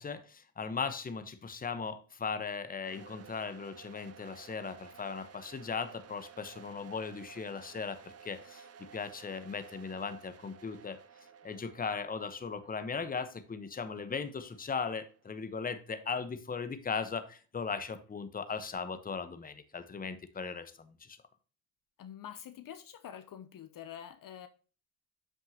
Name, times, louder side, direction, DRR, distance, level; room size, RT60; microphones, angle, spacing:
voice 1, 0.0-8.7 8.9-11.0 11.4-21.2, left 5 dB, 20° left, 11 dB, 1.0 m, -38 dB
sound 1, 2.8-15.7, right 7 dB, 35° right, 0.8 m, -55 dB
voice 2, 22.0-24.5, left 9 dB, 50° left, 11 dB, 0.9 m, -46 dB
7.2 x 6.4 x 2.8 m, 0.36 s
supercardioid pair, 75°, 43 cm